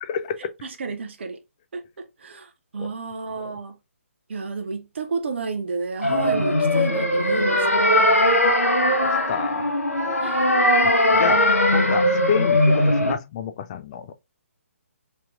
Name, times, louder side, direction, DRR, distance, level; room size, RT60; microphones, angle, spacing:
voice 1, 0.1-0.5 2.8-2.9 3.3-3.6 6.3-6.4 9.0-9.7 10.0-10.2 10.8-11.4 11.7-14.1, left 7 dB, 25° left, 0.4 m, -29 dB
voice 2, 0.8-1.4 1.7-1.8 2.2-2.5 2.7-3.7 4.3-8.4 10.2-10.5, right 4 dB, 50° right, 0.6 m, -31 dB
sound 1, 6.0-13.1, left 1 dB, 80° left, 1.1 m, -19 dB
4.3 x 3.4 x 2.4 m
figure-of-eight pair, 140°, 8 cm